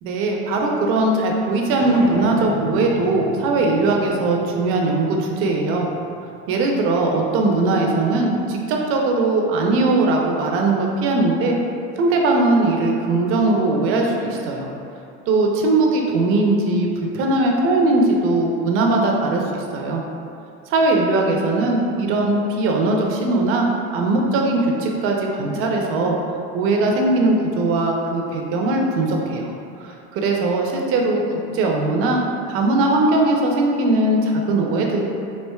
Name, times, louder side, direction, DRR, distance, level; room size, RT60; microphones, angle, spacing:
voice 1, 0.0-5.9 6.5-11.6 12.0-14.7 15.3-16.9 17.1-20.0 20.7-26.2 26.5-29.5 29.8-31.2 31.5-32.2 32.5-35.1, right 2 dB, 50° right, 0 dB, 0.5 m, -20 dB
sound 1, 1.7-7.0, left 2 dB, 15° left, 0.5 m, -34 dB
4.3 x 2.5 x 2.3 m, 2.5 s
supercardioid pair, 125°, 29 cm